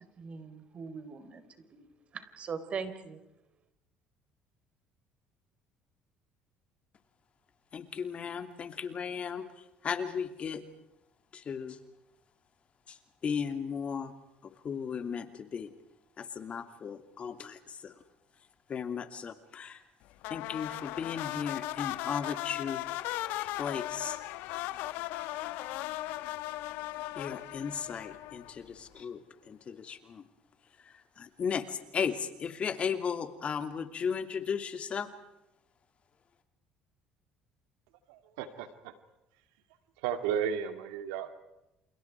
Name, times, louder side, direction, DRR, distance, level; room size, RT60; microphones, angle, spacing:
voice 1, 0.2-1.4 1.7-1.9 2.1-3.2, right 5 dB, 40° right, 10 dB, 4.0 m, -40 dB
voice 2, 7.7-9.5 9.8-10.6 11.3-11.8 12.9-14.1 14.4-15.7 16.2-17.9 18.7-19.8 20.3-22.8 23.4-24.2 27.2-30.2 30.8-35.1, left 6 dB, 40° left, 8 dB, 2.7 m, -36 dB
sound 1, 20.2-28.7, left 16 dB, 80° left, 1.0 m, -37 dB
voice 3, 38.1-38.9 40.0-41.3, right 8 dB, 90° right, 9 dB, 2.3 m, -34 dB
29.0 x 29.0 x 4.7 m, 0.88 s
supercardioid pair, 95°, 3 cm